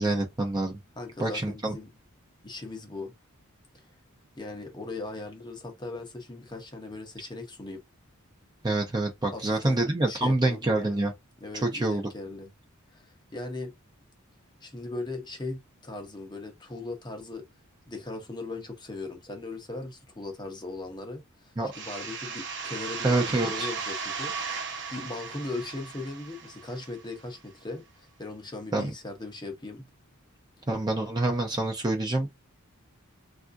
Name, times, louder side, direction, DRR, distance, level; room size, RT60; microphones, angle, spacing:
voice 1, 0.0-0.8 1.2-1.7 8.6-11.1 11.5-12.1 21.6-21.7 23.0-23.7 28.7-28.9 30.7-32.3, right 2 dB, 20° right, 0.5 m, -26 dB
voice 2, 1.0-1.9 2.4-3.1 4.4-7.8 9.3-9.8 10.1-10.7 11.4-12.5 12.9-13.7 14.6-17.4 17.9-29.9, left 2 dB, 20° left, 0.7 m, -39 dB
sound 1, 21.7-27.2, right 5 dB, 55° right, 0.8 m, -36 dB
3.5 x 2.5 x 2.5 m
head